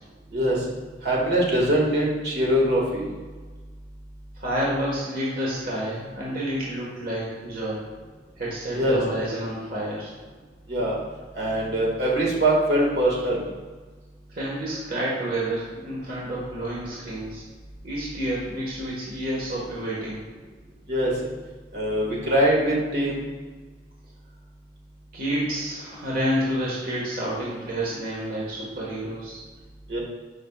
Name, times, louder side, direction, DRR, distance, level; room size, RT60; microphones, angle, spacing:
voice 1, 0.3-0.6 1.0-3.0 8.7-9.0 10.7-11.0 11.3-13.4 20.9-21.1 21.7-23.2 29.9-30.0, right 1 dB, 65° right, -3 dB, 1.9 m, -22 dB
voice 2, 4.3-7.9 8.4-10.1 14.3-17.4 17.8-20.2 25.1-29.4, right 1 dB, 50° right, -6 dB, 1.6 m, -29 dB
10.5 x 5.6 x 2.4 m, 1.4 s
head